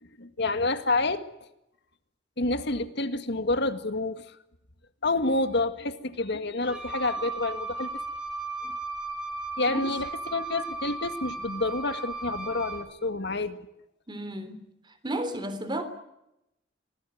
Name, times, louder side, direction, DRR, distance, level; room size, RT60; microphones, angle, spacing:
voice 1, 0.0-1.2 2.4-4.4 5.0-7.9 8.6-8.8 9.6-13.6, left 2 dB, 65° left, 2.1 m, -28 dB
Wind instrument woodwind instrument, 6.6-12.9, right 3 dB, 5° right, 4.5 m, -35 dB
voice 2, 14.1-14.7 15.0-15.8, right 1 dB, 25° right, 3.5 m, -33 dB
25.5 x 19.0 x 9.4 m
head